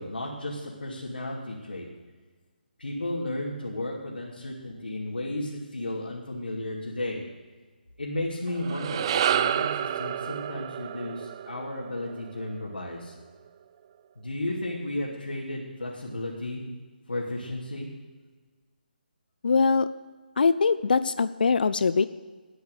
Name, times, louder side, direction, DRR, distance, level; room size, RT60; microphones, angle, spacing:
voice 1, 0.0-1.9 2.8-7.2 8.0-13.1 14.2-16.6 17.1-17.9, left 1 dB, 80° left, -5 dB, 2.8 m, -33 dB
sound 1, 8.5-13.0, right 10 dB, 30° right, 0.4 m, -30 dB
voice 2, 19.4-19.9 20.4-22.1, left 5 dB, 65° left, 14 dB, 0.5 m, -22 dB
13.5 x 9.5 x 6.6 m, 1.4 s
figure-of-eight pair, 150°, 5 cm